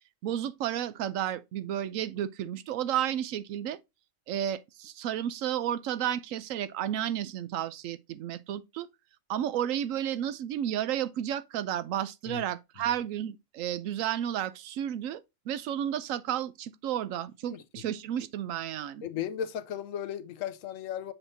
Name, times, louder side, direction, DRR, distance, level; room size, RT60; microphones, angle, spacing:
voice 1, 0.2-3.8 4.3-8.9 9.3-15.2 15.5-19.1, right 10 dB, 85° right, 1.0 m, -32 dB
voice 2, 19.0-21.1, left 9 dB, 80° left, 1.0 m, -35 dB
7.1 x 5.3 x 2.6 m
omnidirectional pair, 1.4 m